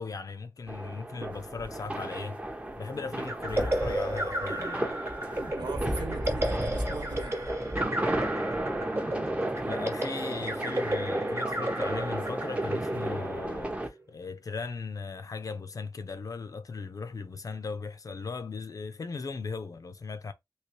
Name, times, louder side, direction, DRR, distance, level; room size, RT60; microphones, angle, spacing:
voice 1, 0.0-2.4 2.8-5.0 9.7-20.3, left 4 dB, 50° left, 0.4 m, -38 dB
sound 1, 0.7-13.9, right 1 dB, 15° right, 0.6 m, -34 dB
sound 2, 3.3-13.9, right 1 dB, 35° right, 1.0 m, -33 dB
voice 2, 5.0-7.4, right 4 dB, 90° right, 0.8 m, -41 dB
3.2 x 2.9 x 2.9 m
wide cardioid pair, 135°, 8 cm